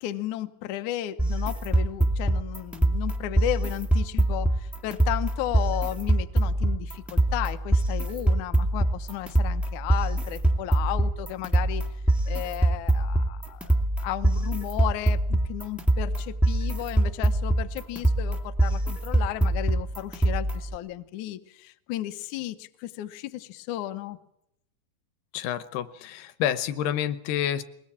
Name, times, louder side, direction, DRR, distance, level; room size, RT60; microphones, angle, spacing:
voice 1, 0.0-11.8 12.3-13.7 14.0-24.2, left 14 dB, 90° left, 9 dB, 1.7 m, -34 dB
sound 1, 1.2-20.8, right 1 dB, ahead, 0.5 m, -24 dB
voice 2, 25.3-27.6, left 10 dB, 75° left, 13 dB, 2.8 m, -28 dB
21.0 x 20.5 x 8.6 m, 0.79 s
omnidirectional pair, 5.0 m